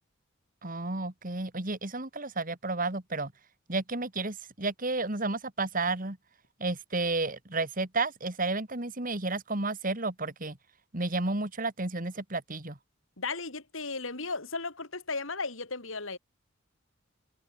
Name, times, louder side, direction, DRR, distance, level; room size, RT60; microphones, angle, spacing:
voice 1, 0.6-3.3 3.7-6.2 6.6-10.6 10.9-12.8, right 3 dB, 40° right, 2.5 m, -32 dB
voice 2, 13.2-16.2, left 4 dB, 75° left, 3.6 m, -35 dB
head